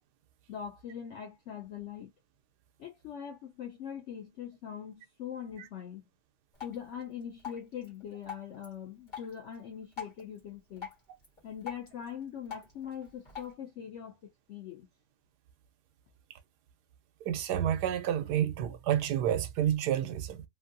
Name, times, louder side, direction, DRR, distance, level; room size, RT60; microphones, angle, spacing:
voice 1, 0.5-2.1 2.8-6.0 6.6-10.9 11.4-14.9, left 8 dB, 75° left, 0.6 m, -42 dB
Drip, 6.5-13.5, left 7 dB, 30° left, 1.5 m, -47 dB
voice 2, 17.2-20.4, right 10 dB, 85° right, 1.2 m, -29 dB
3.0 x 2.5 x 2.5 m
omnidirectional pair, 1.7 m